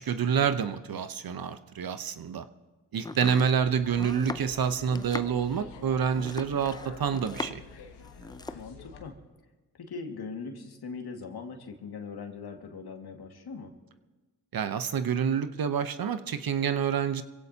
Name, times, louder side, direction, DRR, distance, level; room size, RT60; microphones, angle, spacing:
voice 1, 0.0-2.4 2.9-7.6 14.5-17.2, right 7 dB, 60° right, 10 dB, 0.9 m, -28 dB
Domestic sounds home sounds, 3.0-7.8 8.0-8.7, left 2 dB, 10° left, 0.5 m, -39 dB
sound 1, 3.2-9.1, left 5 dB, 85° left, 1.4 m, -48 dB
voice 2, 8.5-9.1 9.8-13.7, left 4 dB, 70° left, 2 dB, 2.1 m, -40 dB
26.5 x 16.5 x 2.9 m, 1.2 s
supercardioid pair, 50°, 40 cm